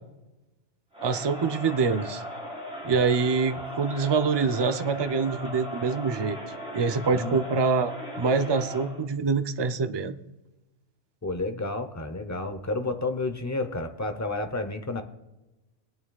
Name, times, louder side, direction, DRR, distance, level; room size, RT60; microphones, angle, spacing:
Crowd, 0.9-9.0, equal, 5° right, 3.9 m, -38 dB
voice 1, 1.0-2.2 2.8-6.4 6.7-10.1, right 5 dB, 40° right, 9 dB, 0.4 m, -25 dB
voice 2, 11.2-15.0, left 2 dB, 20° left, 8 dB, 0.7 m, -31 dB
23.0 x 8.7 x 2.3 m, 1.0 s
omnidirectional pair, 1.2 m